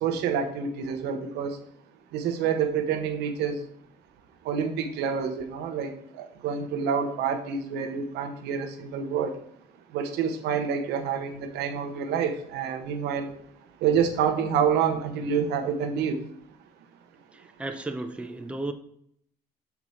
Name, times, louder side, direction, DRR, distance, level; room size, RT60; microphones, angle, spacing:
voice 1, 0.0-1.6 2.1-3.6 4.5-5.9 6.2-9.4 9.9-13.3 13.8-16.2, right 7 dB, 85° right, 6 dB, 0.8 m, -27 dB
voice 2, 17.3-18.7, right 2 dB, 5° right, 6 dB, 0.6 m, -34 dB
6.0 x 4.6 x 4.1 m, 0.69 s
cardioid pair, 110°, 17 cm